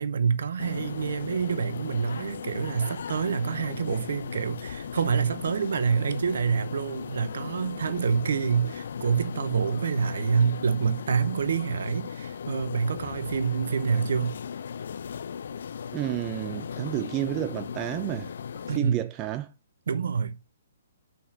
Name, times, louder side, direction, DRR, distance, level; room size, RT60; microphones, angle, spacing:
voice 1, 0.0-14.3 18.7-19.1 19.9-20.4, right 6 dB, 55° right, 0.6 m, -27 dB
sound 1, 0.6-18.8, left 7 dB, 55° left, 0.3 m, -37 dB
voice 2, 15.9-18.3 18.7-19.5, right 14 dB, 25° right, 0.3 m, -30 dB
5.5 x 4.2 x 5.0 m
figure-of-eight pair, 125°, 0 cm